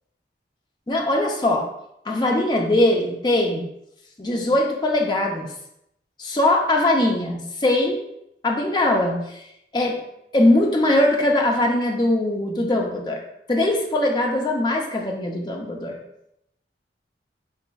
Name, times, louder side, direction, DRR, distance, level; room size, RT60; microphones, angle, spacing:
voice 1, 0.9-1.7 2.1-3.6 4.2-5.5 6.2-8.0 8.4-9.4 9.7-10.0 10.3-13.2 13.5-16.0, left 1 dB, 25° left, 1 dB, 0.5 m, -21 dB
4.1 x 3.6 x 2.2 m, 0.78 s
head